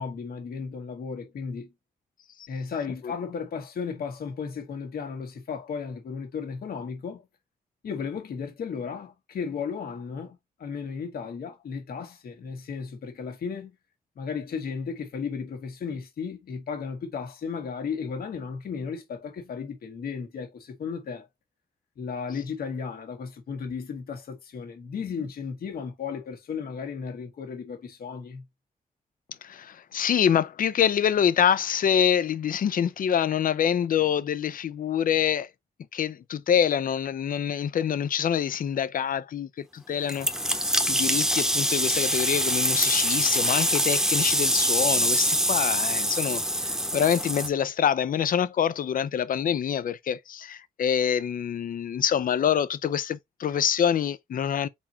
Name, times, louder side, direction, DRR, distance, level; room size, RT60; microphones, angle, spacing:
voice 1, 0.0-1.7 2.5-7.2 7.8-13.7 14.1-21.3 22.0-28.4, left 6 dB, 80° left, 1.6 m, -34 dB
voice 2, 29.4-35.5 35.9-54.7, left 8 dB, 65° left, 0.6 m, -26 dB
sound 1, 40.1-47.5, equal, 5° right, 0.9 m, -24 dB
4.3 x 4.3 x 2.7 m
cardioid pair, 95°, 15 cm